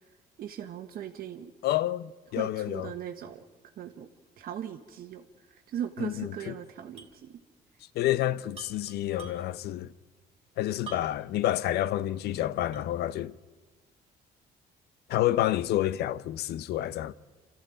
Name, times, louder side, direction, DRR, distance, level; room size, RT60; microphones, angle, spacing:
voice 1, 0.4-1.5 2.4-3.4 3.8-4.1 4.4-5.2 5.5-7.4, right 9 dB, 60° right, 1.3 m, -39 dB
voice 2, 1.6-2.9 6.0-6.5 7.9-9.9 10.6-13.3 15.1-17.1, left 13 dB, 75° left, 0.7 m, -29 dB
sound 1, 7.0-7.2 7.5-7.6 8.5-9.7 10.9-11.4 11.9-12.0 12.7-13.1, right 6 dB, 35° right, 3.0 m, -47 dB
27.5 x 14.0 x 9.1 m
cardioid pair, 110°, 17 cm